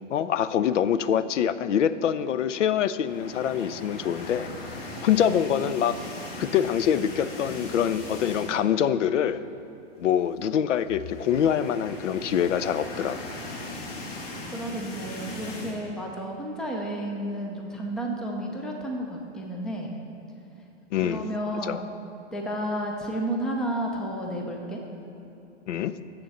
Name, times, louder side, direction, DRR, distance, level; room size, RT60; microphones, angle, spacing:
voice 1, 0.1-4.5 5.0-6.0 6.4-9.4 10.0-13.2 20.9-21.3 21.6-21.8 25.7-26.0, left 9 dB, 85° left, 15 dB, 0.5 m, -25 dB
sound 1, 3.0-8.8 9.2-9.3 9.6-9.7 10.8-15.8, left 2 dB, 50° left, 1.9 m, -39 dB
voice 2, 14.5-19.9 21.0-21.8 22.3-24.8, right 1 dB, ahead, 1 dB, 0.3 m, -31 dB
6.8 x 6.6 x 7.1 m, 2.9 s
hypercardioid pair, 125°, 35 cm